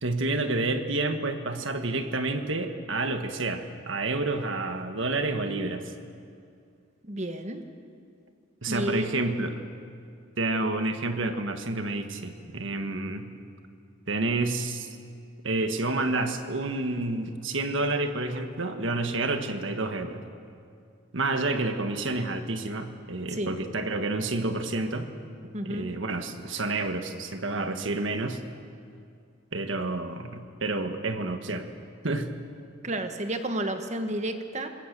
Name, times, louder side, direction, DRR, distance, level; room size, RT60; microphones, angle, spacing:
voice 1, 0.0-5.8 8.6-9.6 10.4-13.3 14.1-14.9 15.4-20.2 21.1-25.1 25.6-28.4 29.5-31.7 32.0-32.3, right 2 dB, 65° right, 7 dB, 1.6 m, -29 dB
voice 2, 7.0-7.6 8.7-9.1 23.3-23.5 25.5-25.9 32.8-34.7, right 1 dB, 35° right, 7 dB, 1.5 m, -31 dB
26.0 x 22.0 x 6.8 m, 2.4 s
head